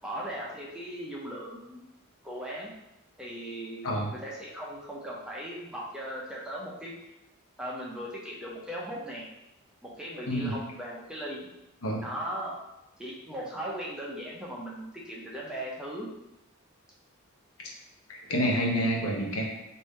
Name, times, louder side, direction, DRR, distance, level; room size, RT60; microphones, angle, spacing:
voice 1, 0.0-1.8 2.2-2.7 3.2-6.9 7.6-9.3 9.8-11.4 12.0-12.5 13.0-16.1, equal, 5° right, -4 dB, 0.6 m, -38 dB
voice 2, 18.1-19.4, equal, 75° left, -1 dB, 0.9 m, -28 dB
4.1 x 2.6 x 3.6 m, 0.90 s
head